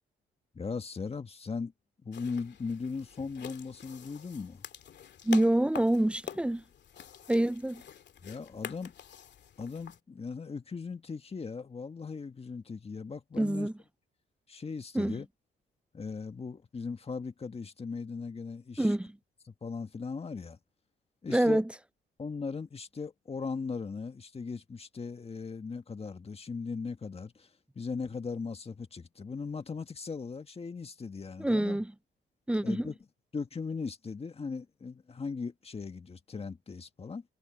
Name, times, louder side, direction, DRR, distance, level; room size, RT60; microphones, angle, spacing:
voice 1, 0.5-1.7 2.0-4.6 8.2-8.9 9.6-13.7 14.5-15.3 15.9-18.9 19.5-20.6 21.2-21.6 22.2-27.5 27.8-31.8 32.6-33.0 33.3-37.2, left 4 dB, 30° left, 1.8 m, -38 dB
sound 1, 2.1-10.0, left 9 dB, 60° left, 2.4 m, -46 dB
voice 2, 5.2-6.6 7.3-7.8 13.4-13.7 14.9-15.2 18.8-19.1 21.3-21.7 31.4-31.9 32.5-32.9, right 1 dB, 5° right, 0.4 m, -26 dB
cardioid pair, 90°, 20 cm